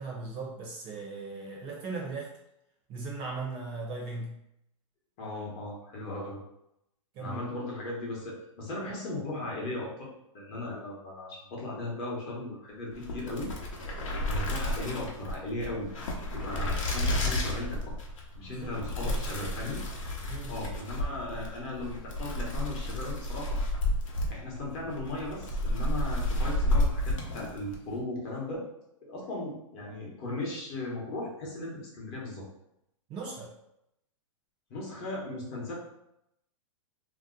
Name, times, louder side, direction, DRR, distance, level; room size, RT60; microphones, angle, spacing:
voice 1, 0.0-2.3 2.9-4.4 7.1-7.5 18.5-19.3 20.3-20.6 33.1-33.5, right 3 dB, 30° right, -2 dB, 0.6 m, -38 dB
voice 2, 5.2-6.4 7.2-10.1 10.3-14.0 14.2-17.9 18.3-19.8 20.5-23.6 24.3-28.6 29.1-32.4 34.7-35.7, left 2 dB, 35° left, -4 dB, 0.9 m, -37 dB
sound 1, 12.9-27.8, left 1 dB, 70° left, 0.9 m, -31 dB
2.8 x 2.1 x 3.7 m, 0.82 s
hypercardioid pair, 150°, 17 cm